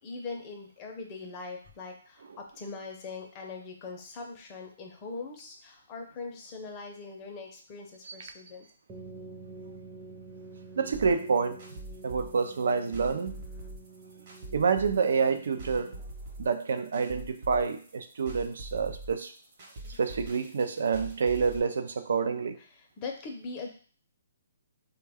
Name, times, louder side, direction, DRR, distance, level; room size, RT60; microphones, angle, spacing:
voice 1, 0.0-8.7 22.8-23.7, left 4 dB, 25° left, 2 dB, 0.6 m, -41 dB
sound 1, 8.9-16.4, right 4 dB, 15° right, 0.6 m, -48 dB
voice 2, 10.8-11.6 12.0-13.4 14.5-16.0 16.4-19.3 19.9-22.6, right 5 dB, 70° right, 9 dB, 0.4 m, -28 dB
sound 2, 10.9-21.6, right 1 dB, 40° right, 0.9 m, -44 dB
3.3 x 2.2 x 3.4 m, 0.43 s
hypercardioid pair, 160°, 0 cm